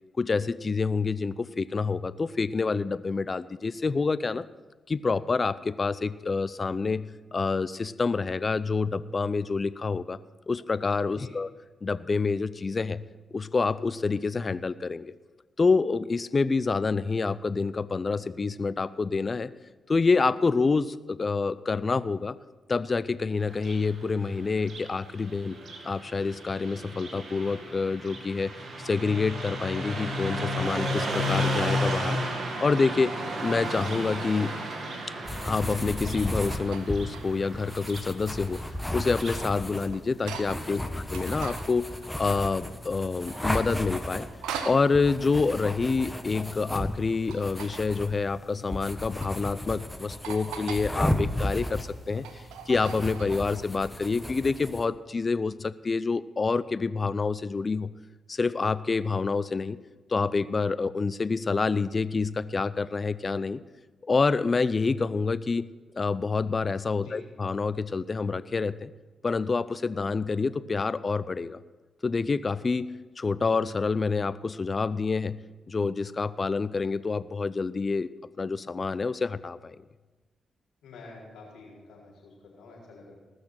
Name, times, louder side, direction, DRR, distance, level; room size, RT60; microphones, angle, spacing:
voice 1, 0.2-4.5 4.9-10.2 10.5-11.5 11.8-13.1 13.3-15.1 15.6-19.5 19.9-22.4 22.7-25.6 25.8-28.5 28.8-32.2 32.6-33.1 33.4-34.6 35.4-38.6 38.9-40.8 41.1-41.9 42.2-44.3 44.6-57.9 58.3-59.8 60.1-63.6 64.0-65.7 65.9-68.9 69.2-71.6 72.0-72.9 73.2-75.4 75.7-78.1 78.4-79.8, left 4 dB, 45° left, 16 dB, 0.6 m, -27 dB
Car passing by, 23.5-39.5, equal, 65° right, 2.1 m, -34 dB
sound 1, 35.3-54.8, left 1 dB, 10° left, 1.4 m, -34 dB
sound 2, 36.0-37.5 38.0-40.7 41.0-42.9 43.2-44.9 46.9-48.0 48.8-49.4 49.8-49.9 50.2-50.9 51.4-53.6, right 7 dB, 90° right, 0.8 m, -42 dB
voice 2, 40.7-41.0 67.0-67.2 80.8-83.1, left 3 dB, 85° left, -4 dB, 4.5 m, -48 dB
19.5 x 6.6 x 6.1 m, 1.3 s
supercardioid pair, 50°, 0 cm